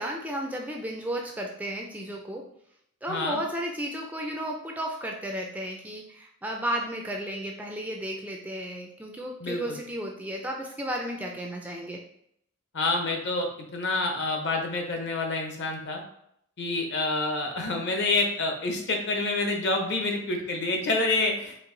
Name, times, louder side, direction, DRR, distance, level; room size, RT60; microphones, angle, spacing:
voice 1, 0.0-2.5 3.0-12.0, right 1 dB, 5° right, 1 dB, 0.3 m, -33 dB
voice 2, 3.1-3.4 9.4-9.8 12.7-16.0 16.6-21.6, left 2 dB, 50° left, 3 dB, 0.9 m, -28 dB
4.6 x 2.6 x 3.8 m, 0.72 s
head